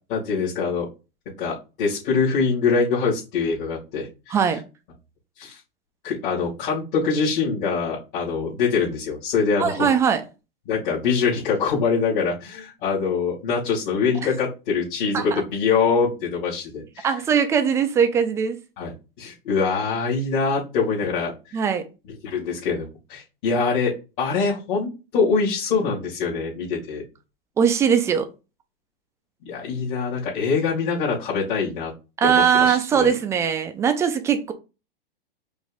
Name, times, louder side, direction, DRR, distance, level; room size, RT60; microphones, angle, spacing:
voice 1, 0.1-0.9 1.4-4.5 5.4-5.6 6.0-9.9 10.7-17.1 18.8-18.9 19.2-21.6 22.2-27.0 29.4-31.9 32.2-33.1, left 5 dB, 50° left, 2.3 m, -24 dB
voice 2, 4.3-4.6 9.6-10.2 15.1-15.4 17.0-18.6 21.5-21.9 27.6-28.3 32.2-34.5, right 7 dB, 10° right, 0.3 m, -20 dB
5.2 x 2.6 x 3.6 m
hypercardioid pair, 135°, 29 cm